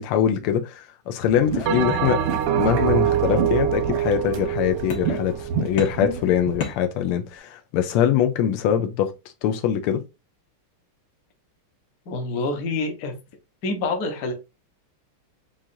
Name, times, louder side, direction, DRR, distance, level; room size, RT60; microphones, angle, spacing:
voice 1, 0.0-2.2 2.5-9.1 9.4-10.0, left 9 dB, 90° left, 1.5 m, -23 dB
sound 1, 1.2-6.6, right 5 dB, 90° right, 2.1 m, -31 dB
sound 2, 1.5-2.9 3.2-4.0 4.9-5.4 5.8-7.4, left 4 dB, 70° left, 1.9 m, -37 dB
Bell, 1.7-6.3, right 10 dB, 75° right, 1.0 m, -25 dB
voice 2, 12.1-13.1 13.6-14.3, left 3 dB, 50° left, 1.2 m, -26 dB
7.3 x 2.5 x 2.6 m
omnidirectional pair, 2.4 m